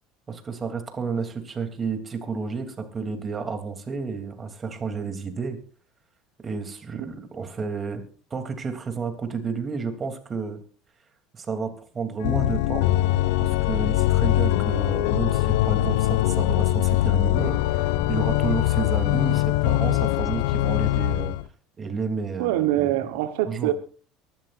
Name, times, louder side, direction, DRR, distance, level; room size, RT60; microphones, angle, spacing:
voice 1, 0.3-5.6 6.4-8.0 8.3-10.6 11.3-12.9 13.4-21.3 21.8-23.1 23.5-23.7, right 5 dB, 30° right, 6 dB, 3.2 m, -31 dB
Organ, 12.2-21.4, left 15 dB, 75° left, 0.6 m, -22 dB
voice 2, 22.4-23.7, right 14 dB, 75° right, 8 dB, 1.3 m, -24 dB
23.5 x 12.5 x 2.6 m, 0.40 s
hypercardioid pair, 75°, 0 cm